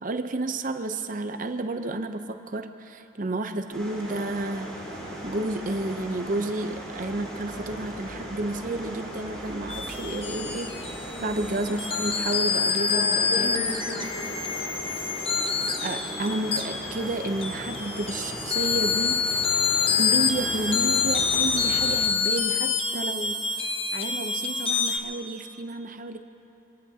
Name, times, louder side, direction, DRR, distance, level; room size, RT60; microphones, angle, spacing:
voice 1, 0.0-4.8 5.2-13.5 15.8-19.4 20.0-23.4 23.9-26.2, right 2 dB, 40° right, 8 dB, 0.6 m, -31 dB
sound 1, 3.7-22.0, equal, 5° left, 3.7 m, -38 dB
sound 2, 9.7-25.0, left 5 dB, 25° left, 0.8 m, -27 dB
voice 2, 11.1-11.4 12.9-14.7, left 2 dB, 80° left, -6 dB, 4.1 m, -36 dB
25.0 x 18.5 x 2.8 m, 2.9 s
head